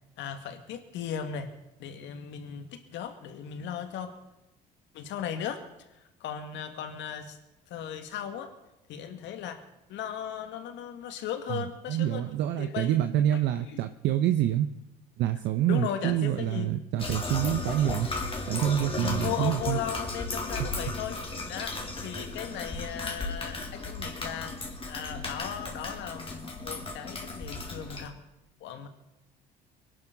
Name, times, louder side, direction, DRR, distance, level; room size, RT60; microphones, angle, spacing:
voice 1, 0.2-1.5 1.8-4.1 4.9-5.6 5.9-7.4 7.7-8.5 8.9-9.6 9.9-12.2 12.6-12.9 13.3-13.8 15.7-16.7 19.0-21.2 21.5-24.6 24.9-28.2 28.6-28.9, left 9 dB, 65° left, 7 dB, 2.1 m, -37 dB
voice 2, 11.5-14.7 15.2-18.1 18.5-19.8, right 11 dB, 65° right, 9 dB, 0.8 m, -27 dB
sound 1, 17.0-28.1, left 2 dB, 25° left, 3.4 m, -35 dB
23.0 x 11.5 x 4.0 m, 0.94 s
hypercardioid pair, 60°, 20 cm